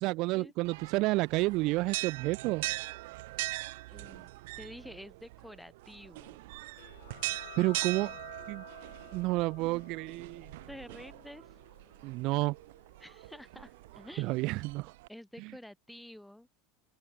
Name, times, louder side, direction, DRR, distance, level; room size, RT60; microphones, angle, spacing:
voice 1, 0.0-2.6 7.6-8.1 8.5-8.6 9.1-10.5 12.0-12.5 14.2-14.9, right 22 dB, 55° right, 1.5 m, -30 dB
sound 1, 0.6-15.1, right 20 dB, 70° right, 1.7 m, -41 dB
voice 2, 3.9-4.3 4.6-6.5 8.0-8.2 10.7-11.4 13.0-14.5 15.1-16.5, left 1 dB, ahead, 4.8 m, -49 dB
sound 2, 6.8-14.0, left 13 dB, 90° left, 6.6 m, -54 dB
open air
supercardioid pair, 120°, 0 cm